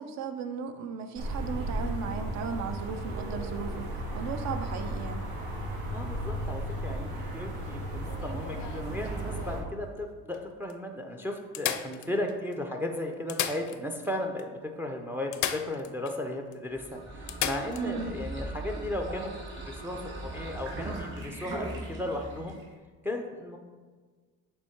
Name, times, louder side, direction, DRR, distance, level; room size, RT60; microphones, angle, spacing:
voice 1, 0.0-3.9 4.1-5.2 17.8-18.2, right 6 dB, 50° right, 8 dB, 0.7 m, -36 dB
sound 1, 1.2-9.6, right 1 dB, 80° right, 1.6 m, -35 dB
voice 2, 5.9-22.6 23.0-23.6, left 1 dB, 5° right, 3 dB, 0.4 m, -35 dB
sound 2, 8.0-9.7 10.3-10.4 10.7-10.8 11.5-12.5 13.1-14.1 14.4-14.5 15.3-16.2 16.5-16.6 17.3-17.9 19.8-20.0, left 11 dB, 55° left, 0.5 m, -35 dB
sound 3, 16.7-22.7, right 2 dB, 35° right, 2.0 m, -39 dB
7.6 x 3.6 x 4.4 m, 1.5 s
cardioid pair, 130°, 34 cm